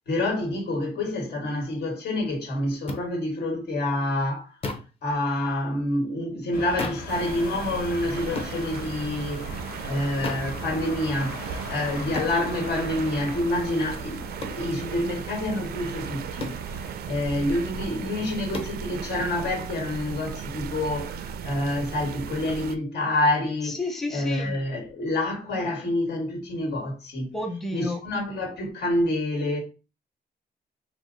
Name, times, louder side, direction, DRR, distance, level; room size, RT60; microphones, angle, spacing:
voice 1, 0.1-4.5 5.0-16.5 17.1-23.8 24.1-27.3 27.7-29.6, left 1 dB, 85° left, 1.7 m, -27 dB
sound 1, 2.9-3.0 4.6-5.0 6.8-7.1 8.4-8.6 10.2-10.5 12.2-12.4 14.4-14.6 16.4-16.7 18.5-18.8, left 3 dB, 35° left, 0.8 m, -33 dB
sound 2, 6.5-17.0, left 3 dB, 70° left, 1.2 m, -40 dB
sound 3, 7.1-22.8, right 7 dB, 70° right, 0.4 m, -36 dB
voice 2, 23.8-24.6 27.3-28.0, left 2 dB, ahead, 0.5 m, -30 dB
4.5 x 2.2 x 3.9 m
wide cardioid pair, 155°, 17 cm